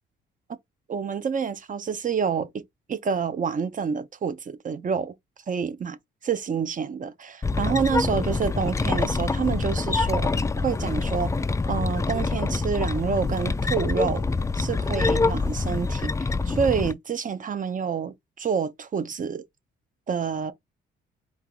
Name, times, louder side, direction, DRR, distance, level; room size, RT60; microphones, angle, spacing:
voice 1, 0.9-2.6 2.9-5.1 5.5-6.0 6.2-10.3 10.6-11.3 11.7-14.2 14.5-19.4 20.1-20.5, right 6 dB, 40° right, 0.8 m, -28 dB
sound 1, 7.4-16.9, left 3 dB, 15° left, 0.4 m, -25 dB
4.5 x 3.0 x 3.8 m
cardioid pair, 90°, 20 cm